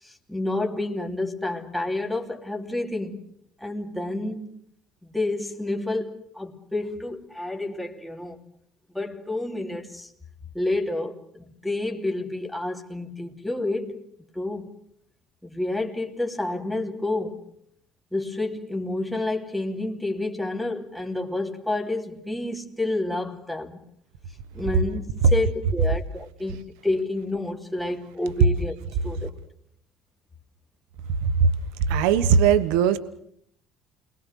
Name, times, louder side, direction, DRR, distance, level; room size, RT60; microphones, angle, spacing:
voice 1, 0.0-3.2 3.6-4.5 5.0-8.4 8.9-10.1 10.5-14.0 14.3-14.7 15.4-17.5 18.1-23.8 24.5-28.7 29.0-29.3, left 2 dB, 5° left, 3.1 m, -29 dB
voice 2, 31.9-33.0, right 7 dB, 85° right, 1.2 m, -18 dB
29.0 x 21.5 x 6.6 m
supercardioid pair, 100°, 0 cm